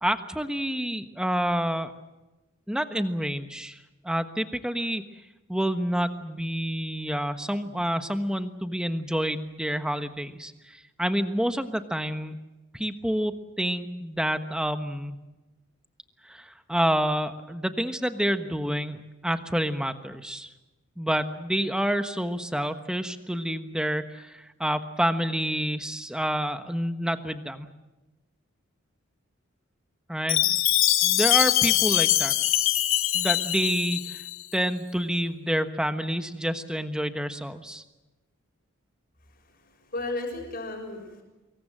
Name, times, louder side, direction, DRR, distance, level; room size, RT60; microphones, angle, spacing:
voice 1, 0.0-1.9 2.7-5.0 5.5-12.4 12.7-15.2 16.2-20.5 21.0-27.7 30.1-30.6 31.0-32.3 33.1-34.2 34.5-37.8, equal, 5° right, 8 dB, 1.2 m, -28 dB
Chime, 30.3-34.4, left 14 dB, 70° left, 1.0 m, -23 dB
voice 2, 39.5-41.2, left 2 dB, 40° left, 2 dB, 6.6 m, -35 dB
25.5 x 22.5 x 7.7 m, 1.1 s
head